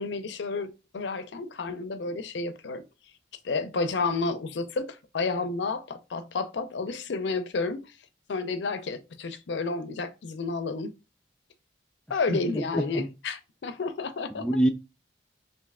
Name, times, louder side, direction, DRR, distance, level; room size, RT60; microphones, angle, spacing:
voice 1, 0.0-2.8 3.4-7.8 8.3-10.9 12.1-14.5, left 3 dB, 70° left, 0.4 m, -31 dB
voice 2, 12.3-13.1 14.4-14.7, right 1 dB, 5° left, 0.3 m, -26 dB
3.2 x 2.6 x 3.5 m
head